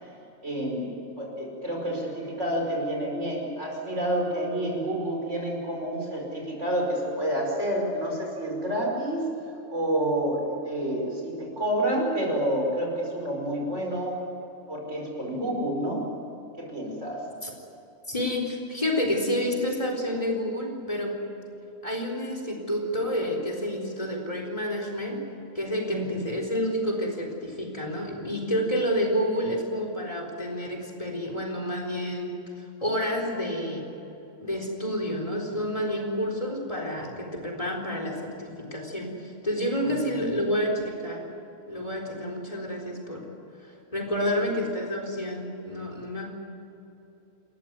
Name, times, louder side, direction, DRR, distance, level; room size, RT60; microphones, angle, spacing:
voice 1, 0.4-9.3 9.7-14.2 14.7-16.1 16.6-17.3 25.9-26.2, right 1 dB, 60° right, 0 dB, 5.8 m, -29 dB
voice 2, 18.1-21.3 21.8-25.2 25.5-33.8 34.4-41.2 41.7-43.3 43.6-46.3, equal, 25° left, 1 dB, 4.1 m, -29 dB
28.5 x 14.5 x 9.6 m, 3.0 s
omnidirectional pair, 1.4 m